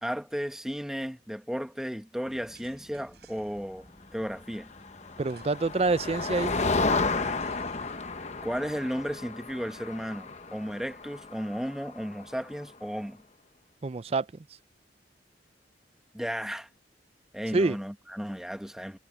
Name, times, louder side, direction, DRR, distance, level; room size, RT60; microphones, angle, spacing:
voice 1, 0.0-4.7 7.0-7.4 8.4-13.2 16.1-16.7 17.3-19.0, equal, 5° right, 1.2 m, -34 dB
sound 1, 2.2-7.9, equal, 20° left, 7.1 m, -57 dB
sound 2, 2.5-3.8 5.2-6.0 6.3-6.4 7.4-8.2, right 7 dB, 65° right, 6.5 m, -59 dB
Motor vehicle (road), 4.7-12.5, left 3 dB, 40° left, 0.9 m, -32 dB
voice 2, 5.2-6.6 13.8-14.3 17.5-17.8, right 3 dB, 35° right, 0.4 m, -26 dB
head